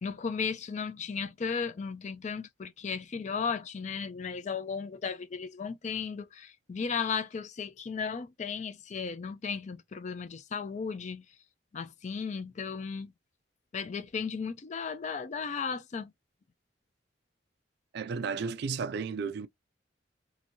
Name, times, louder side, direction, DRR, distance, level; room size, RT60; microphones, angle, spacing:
voice 1, 0.0-11.2 11.7-13.1 13.7-16.1, left 5 dB, 40° left, 0.4 m, -35 dB
voice 2, 17.9-19.5, right 5 dB, 60° right, 0.3 m, -33 dB
2.8 x 2.6 x 2.7 m
head